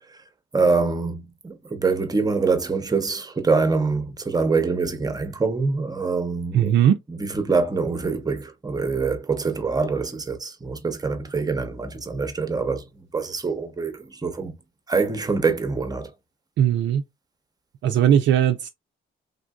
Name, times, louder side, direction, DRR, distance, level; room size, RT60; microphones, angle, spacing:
voice 1, 0.5-6.7 7.1-14.5 14.9-16.1, right 4 dB, 20° right, 0.7 m, -25 dB
voice 2, 6.5-6.9 16.6-17.0 17.8-18.7, right 10 dB, 65° right, 0.4 m, -18 dB
3.4 x 2.5 x 2.3 m
cardioid pair, 90°, 20 cm